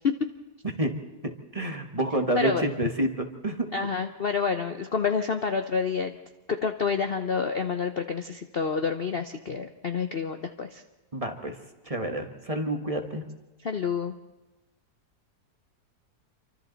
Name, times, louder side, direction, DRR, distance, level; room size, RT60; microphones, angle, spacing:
voice 1, 1.2-3.7 11.1-11.6 11.8-13.2, right 1 dB, 20° right, 4 dB, 1.5 m, -29 dB
voice 2, 3.7-6.1 6.6-10.8 13.6-14.1, left 5 dB, 45° left, 7 dB, 0.8 m, -28 dB
27.0 x 24.5 x 4.1 m, 1.1 s
omnidirectional pair, 1.8 m